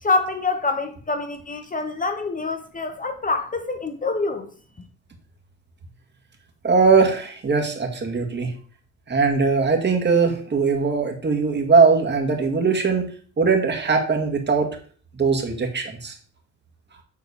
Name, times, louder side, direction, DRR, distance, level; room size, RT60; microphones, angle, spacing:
voice 1, 0.0-4.5, left 3 dB, 25° left, 1.0 m, -26 dB
voice 2, 6.6-8.5 9.1-13.1 13.4-14.8 15.1-16.2, right 4 dB, 35° right, 2.2 m, -20 dB
9.8 x 4.0 x 5.0 m
cardioid pair, 90°, 30 cm